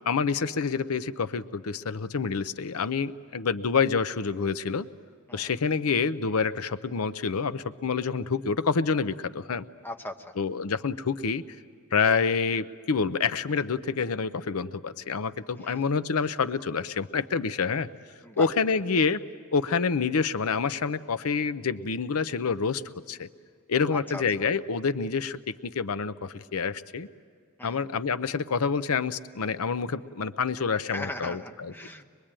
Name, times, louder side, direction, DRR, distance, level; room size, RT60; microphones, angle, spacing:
voice 1, 0.1-4.9 5.3-9.6 10.4-11.4 11.9-17.9 18.4-19.2 19.5-22.8 23.1-23.3 23.7-27.1 27.6-31.7, left 5 dB, 90° left, 13 dB, 0.7 m, -27 dB
voice 2, 9.8-10.3 15.6-15.8 18.2-18.5 23.9-24.2 27.6-27.8 30.9-32.0, left 1 dB, 10° left, 3 dB, 1.1 m, -38 dB
24.5 x 22.0 x 8.9 m, 2.1 s
head